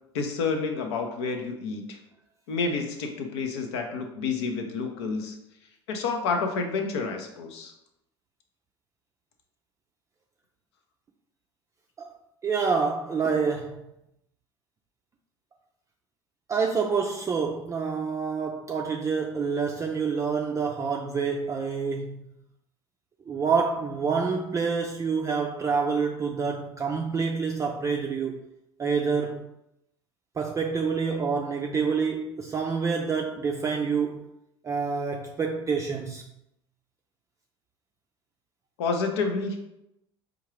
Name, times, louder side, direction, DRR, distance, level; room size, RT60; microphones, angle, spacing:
voice 1, 0.1-2.0 2.5-5.3 5.9-7.7 38.8-39.6, left 4 dB, 75° left, 0.7 m, -29 dB
voice 2, 12.4-13.9 16.5-22.2 23.3-28.4 28.8-29.5 30.4-34.3 34.6-36.2, right 5 dB, 20° right, 0.4 m, -27 dB
4.5 x 2.4 x 3.1 m
hypercardioid pair, 70°, 14 cm